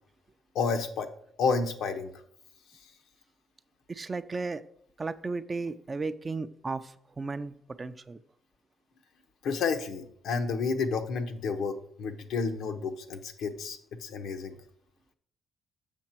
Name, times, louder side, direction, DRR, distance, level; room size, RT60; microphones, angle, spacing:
voice 1, 0.5-1.1 1.4-2.1 9.4-14.5, left 5 dB, 80° left, 6 dB, 0.9 m, -30 dB
voice 2, 3.9-4.6 5.0-8.2, right 3 dB, 30° right, 12 dB, 0.4 m, -35 dB
7.2 x 5.8 x 4.4 m, 0.65 s
cardioid pair, 90°, 0 cm